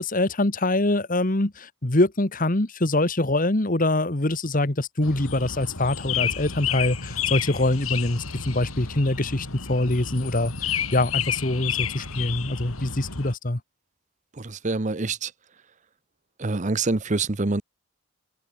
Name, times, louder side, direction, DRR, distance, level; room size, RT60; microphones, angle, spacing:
voice 1, 0.0-13.6, left 2 dB, 40° left, 1.6 m, -24 dB
sound 1, 5.0-13.3, left 8 dB, 90° left, 4.5 m, -31 dB
voice 2, 14.4-15.3 16.4-17.6, right 3 dB, 35° right, 0.8 m, -26 dB
head